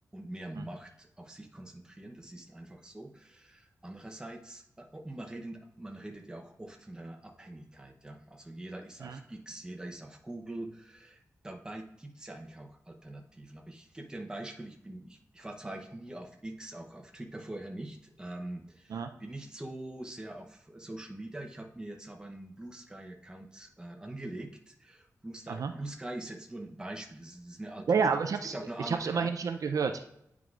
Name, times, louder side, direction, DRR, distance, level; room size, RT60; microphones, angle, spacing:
voice 1, 0.1-28.1 28.5-29.3, right 1 dB, 10° right, 1 dB, 0.8 m, -43 dB
voice 2, 27.9-28.6 28.9-30.0, right 5 dB, 65° right, 6 dB, 0.4 m, -29 dB
9.3 x 4.7 x 2.4 m, 0.77 s
wide cardioid pair, 145°, 6 cm